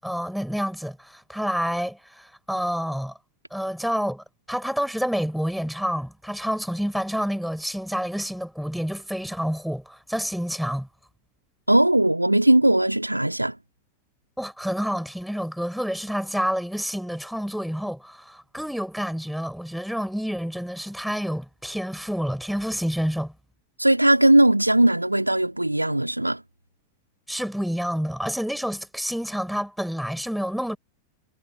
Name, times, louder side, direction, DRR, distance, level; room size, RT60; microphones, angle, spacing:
voice 1, 0.0-3.1 3.5-10.9 14.4-23.3 27.3-30.8, equal, ahead, 6.5 m, -28 dB
voice 2, 11.7-13.6 23.8-26.4, right 1 dB, 85° right, 2.8 m, -19 dB
figure-of-eight pair, 90°, 0 cm